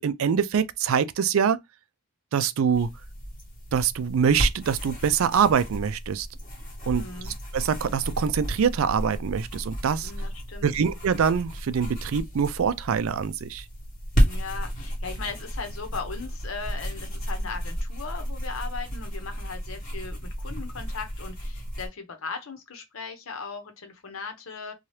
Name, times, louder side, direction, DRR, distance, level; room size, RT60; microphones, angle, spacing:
voice 1, 0.0-1.6 2.3-2.9 3.7-6.3 6.9-10.1 10.6-13.6, right 7 dB, 80° right, 0.4 m, -24 dB
sound 1, 2.7-21.9, equal, 40° left, 1.3 m, -32 dB
voice 2, 6.9-7.3 10.0-10.7 14.1-24.7, left 4 dB, 75° left, 0.8 m, -38 dB
2.8 x 2.3 x 3.1 m
head